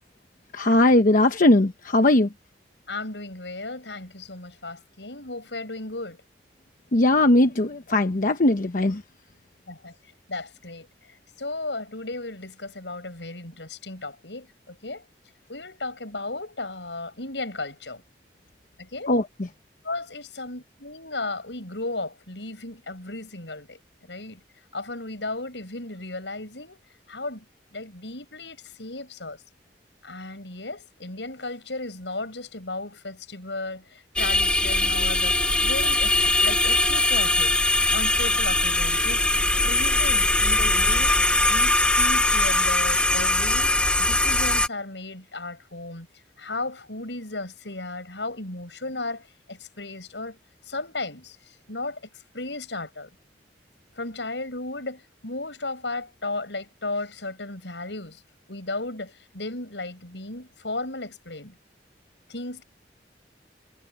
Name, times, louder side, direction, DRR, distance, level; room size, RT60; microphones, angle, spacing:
voice 1, 0.5-2.3 6.9-9.0 19.1-19.2, left 1 dB, 50° left, 1.0 m, -19 dB
voice 2, 2.9-6.2 9.7-10.9 11.4-15.0 15.5-18.0 18.8-19.1 19.8-23.8 24.1-24.4 24.7-26.8 27.1-27.4 27.7-29.4 30.0-37.5 37.9-39.3 39.6-41.2 41.5-46.1 46.4-50.4 50.7-52.0 52.3-53.1 54.0-58.2 58.5-61.6 62.3-62.6, left 2 dB, 85° left, 7.6 m, -35 dB
sound 1, 34.2-44.7, left 2 dB, 5° left, 1.1 m, -21 dB
head